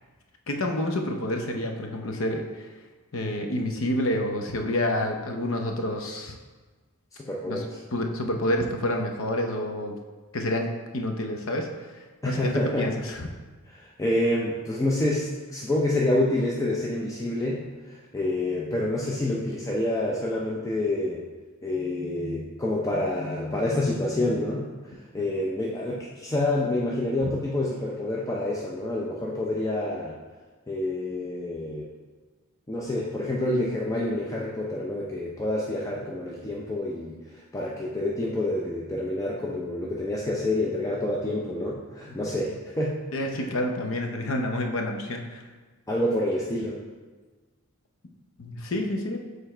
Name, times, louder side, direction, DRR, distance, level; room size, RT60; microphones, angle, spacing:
voice 1, 0.5-2.6 3.1-6.4 7.5-7.6 7.9-10.0 10.3-12.5 12.8-13.3 42.1-42.2 43.1-45.4 48.4-49.2, left 1 dB, 65° left, 3 dB, 0.7 m, -28 dB
voice 2, 7.1-7.8 12.2-12.9 13.7-21.2 21.6-30.2 30.7-31.9 32.7-43.0 43.3-43.5 45.9-46.8, left 1 dB, 15° left, -4 dB, 0.4 m, -28 dB
6.9 x 3.3 x 4.3 m, 1.4 s
head